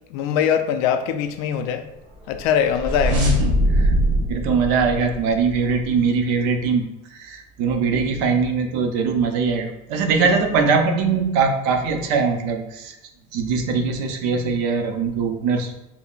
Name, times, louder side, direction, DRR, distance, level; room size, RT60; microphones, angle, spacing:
voice 1, 0.1-1.8 2.3-3.3 10.1-10.3, left 8 dB, 75° left, 8 dB, 0.4 m, -22 dB
sound 1, 2.2-5.9, equal, 40° right, 0.9 m, -22 dB
voice 2, 3.1-3.9 4.3-13.0 13.3-15.7, right 4 dB, 65° right, 5 dB, 0.5 m, -21 dB
5.3 x 2.0 x 2.4 m, 0.91 s
cardioid pair, 160°, 19 cm